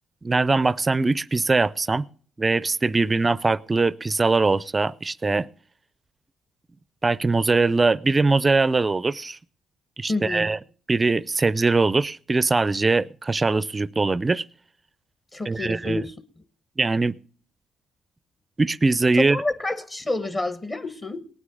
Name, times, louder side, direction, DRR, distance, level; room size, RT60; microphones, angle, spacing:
voice 1, 0.2-2.0 2.4-5.5 7.0-9.4 10.0-10.6 10.9-14.4 15.5-16.0 16.8-17.2 18.6-19.4, right 3 dB, 25° right, 20 dB, 0.5 m, -21 dB
voice 2, 10.1-10.5 15.3-16.2 19.1-21.3, left 2 dB, 30° left, 9 dB, 1.2 m, -28 dB
18.5 x 9.7 x 3.9 m, 0.43 s
cardioid pair, 90°, 0 cm